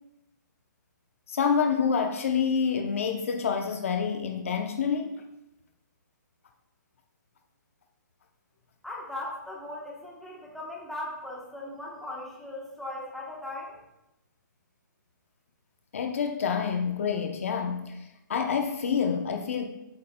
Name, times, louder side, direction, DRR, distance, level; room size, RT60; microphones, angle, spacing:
voice 1, 1.3-5.2 15.9-19.6, left 6 dB, 45° left, 5 dB, 0.7 m, -27 dB
voice 2, 8.8-13.8, left 1 dB, ahead, -4 dB, 1.1 m, -38 dB
14.0 x 8.6 x 2.2 m, 0.90 s
hypercardioid pair, 170°, 11 cm